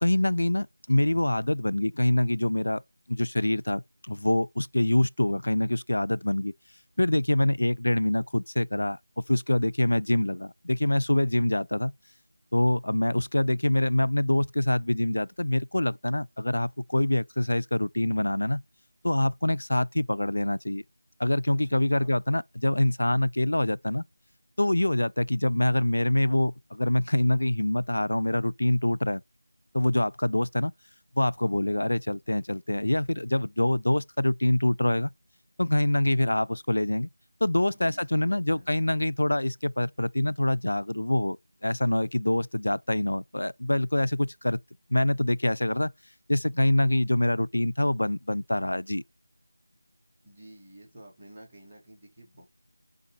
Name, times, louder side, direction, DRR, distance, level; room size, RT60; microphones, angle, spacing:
voice 1, 0.0-2.8 3.1-6.5 7.0-9.0 9.3-11.9 12.5-18.6 19.0-20.8 21.2-24.0 24.6-29.2 29.7-30.7 31.2-35.1 35.6-37.1 37.4-41.4 41.6-44.6 44.9-45.9 46.3-49.0, left 1 dB, 85° left, 0.3 m, -25 dB
voice 2, 21.5-22.1 37.7-38.7 50.2-52.4, equal, 10° right, 1.8 m, -50 dB
5.8 x 3.9 x 4.1 m
figure-of-eight pair, 175°, 0 cm